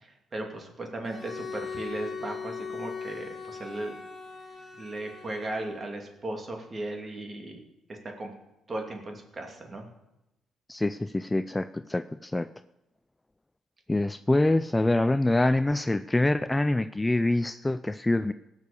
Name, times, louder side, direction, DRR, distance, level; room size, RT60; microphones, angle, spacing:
voice 1, 0.0-3.9 4.8-7.6 7.9-8.3 8.7-9.9, right 2 dB, 35° right, 2 dB, 2.6 m, -36 dB
Bowed string instrument, 1.0-6.0, left 5 dB, 30° left, 2.1 m, -40 dB
voice 2, 10.7-12.5 13.9-18.3, left 2 dB, 15° left, 12 dB, 0.4 m, -25 dB
17.0 x 6.5 x 6.9 m, 0.93 s
cardioid pair, 90°, 0 cm